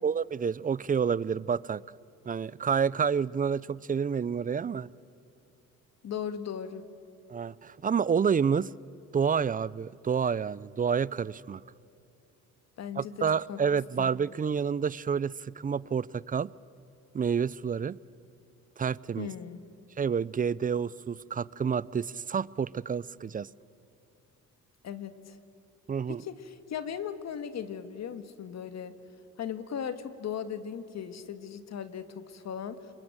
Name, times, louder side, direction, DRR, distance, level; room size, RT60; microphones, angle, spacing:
voice 1, 0.0-1.8 2.3-4.9 7.3-8.7 9.1-11.6 13.0-16.5 17.1-18.0 18.8-19.3 20.0-23.5 25.9-26.2, right 6 dB, 25° right, 0.5 m, -29 dB
voice 2, 6.0-6.9 12.8-13.1 13.5-13.6 14.0-14.1 19.2-19.6 24.8-25.4 26.1-28.9 29.4-32.9, left 8 dB, 60° left, 1.8 m, -37 dB
30.0 x 22.0 x 8.9 m
cardioid pair, 90°, 30 cm